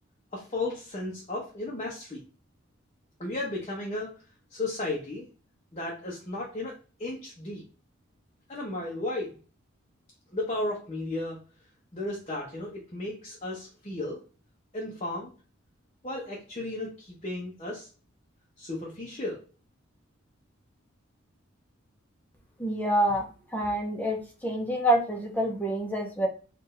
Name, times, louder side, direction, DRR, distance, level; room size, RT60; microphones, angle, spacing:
voice 1, 0.3-2.2 3.2-4.1 4.5-5.2 5.7-6.7 7.0-7.6 8.5-9.3 10.3-11.4 11.9-14.2 14.7-15.3 16.0-17.9 18.6-19.4, left 2 dB, 30° left, -4 dB, 0.9 m, -34 dB
voice 2, 22.6-26.3, right 1 dB, 10° left, 2 dB, 0.9 m, -27 dB
4.5 x 2.6 x 3.2 m, 0.36 s
head